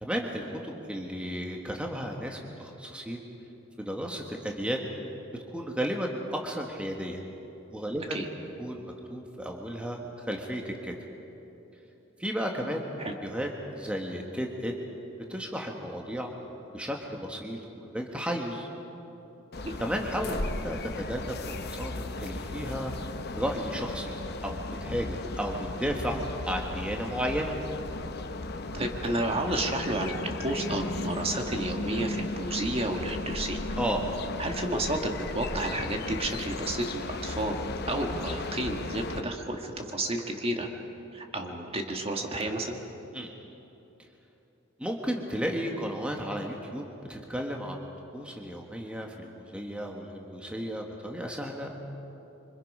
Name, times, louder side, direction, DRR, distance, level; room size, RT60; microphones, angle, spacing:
voice 1, 0.0-3.2 3.8-4.9 5.5-7.2 7.7-10.9 12.2-12.9 13.2-13.5 13.8-14.7 15.3-16.3 16.7-18.7 19.8-22.9 23.4-24.2 24.4-27.6 33.8-34.0 43.1-43.3 44.8-47.8 48.1-51.7, equal, 5° right, 1 dB, 1.5 m, -33 dB
sound 1, 19.5-39.2, left 2 dB, 50° left, 0.9 m, -36 dB
voice 2, 28.7-33.6 34.4-37.6 37.9-40.7 41.1-42.8, right 1 dB, 30° right, 2 dB, 1.6 m, -31 dB
26.5 x 25.0 x 5.5 m, 3.0 s
head